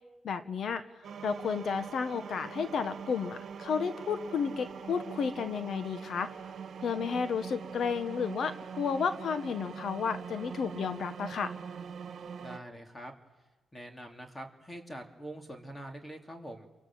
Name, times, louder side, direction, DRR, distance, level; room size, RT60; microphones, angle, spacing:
voice 1, 0.2-0.8 1.2-6.3 6.8-11.5, left 6 dB, 65° left, 10 dB, 1.3 m, -32 dB
sound 1, 1.0-12.6, right 6 dB, 60° right, 1.8 m, -43 dB
voice 2, 12.4-13.1 13.7-16.7, right 1 dB, 15° left, 4 dB, 3.2 m, -44 dB
29.0 x 24.0 x 7.8 m, 1.2 s
cardioid pair, 110°, 0 cm